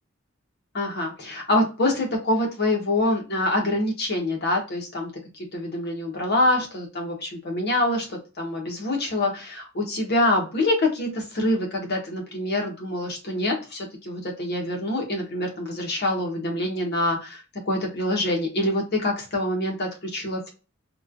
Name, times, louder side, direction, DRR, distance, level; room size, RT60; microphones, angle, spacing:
voice 1, 0.7-5.1 5.5-20.5, left 1 dB, 50° left, 1 dB, 0.9 m, -25 dB
3.1 x 2.2 x 2.3 m, 0.32 s
head